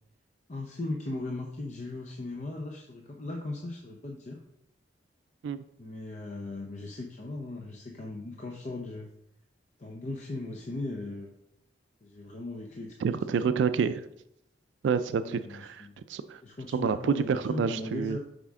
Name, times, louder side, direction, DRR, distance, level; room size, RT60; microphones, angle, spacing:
voice 1, 0.5-4.4 5.8-9.1 9.8-11.3 12.0-13.6 15.1-15.9 16.4-18.2, left 2 dB, 40° left, 1 dB, 0.6 m, -38 dB
voice 2, 13.0-14.1 14.8-16.4 16.7-18.2, right 6 dB, 75° right, 12 dB, 0.3 m, -28 dB
7.3 x 4.9 x 3.6 m, 0.78 s
head